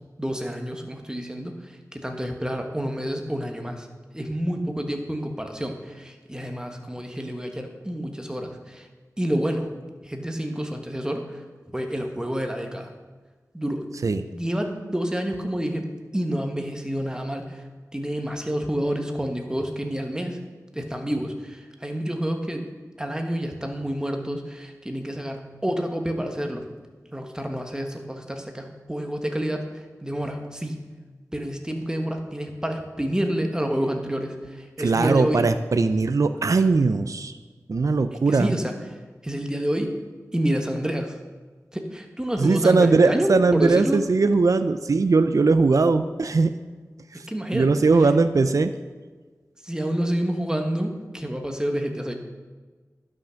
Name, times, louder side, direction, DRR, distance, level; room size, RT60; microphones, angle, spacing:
voice 1, 0.2-3.9 4.1-8.9 9.2-9.7 10.0-11.4 11.7-12.9 13.5-13.9 14.3-17.6 17.9-20.4 20.7-22.7 23.0-26.6 27.1-29.6 30.0-30.9 31.3-35.4 38.3-38.7 39.2-39.9 40.3-41.1 41.7-44.0 47.1-47.9 49.6-52.1, equal, 10° right, 4 dB, 1.4 m, -28 dB
voice 2, 34.8-37.3 37.7-38.6 42.4-46.5 47.1-47.3 47.5-48.7, right 3 dB, 65° right, 10 dB, 0.5 m, -20 dB
11.5 x 6.0 x 6.4 m, 1.4 s
wide cardioid pair, 65°, 6 cm